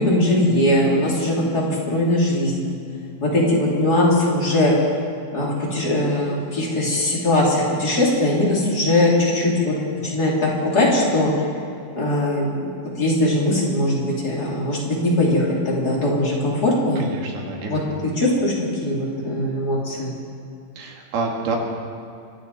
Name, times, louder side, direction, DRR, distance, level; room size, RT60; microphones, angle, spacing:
voice 1, 0.0-2.7 3.2-4.8 5.3-9.7 10.0-11.3 11.9-17.0 17.7-18.5 18.8-20.1, left 1 dB, 25° left, -4 dB, 3.3 m, -20 dB
voice 2, 17.0-17.9 20.8-21.6, right 4 dB, 85° right, 0 dB, 4.0 m, -28 dB
25.0 x 13.0 x 4.2 m, 2.5 s
omnidirectional pair, 4.3 m